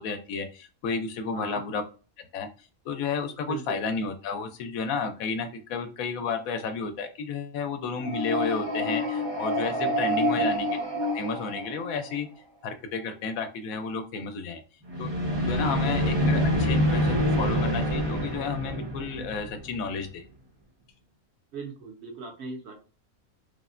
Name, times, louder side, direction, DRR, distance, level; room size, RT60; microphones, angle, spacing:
voice 1, 0.0-1.8 2.3-10.7 11.1-12.3 12.6-14.6 15.0-15.1 15.4-20.2, left 5 dB, 75° left, 7 dB, 1.0 m, -32 dB
voice 2, 1.3-1.6 3.5-3.8 9.8-9.9 15.4-15.6 21.5-22.8, right 4 dB, 60° right, 2 dB, 0.8 m, -39 dB
sound 1, 8.0-12.3 14.9-19.9, equal, 25° right, 0.6 m, -27 dB
3.3 x 2.1 x 2.4 m, 0.35 s
omnidirectional pair, 1.5 m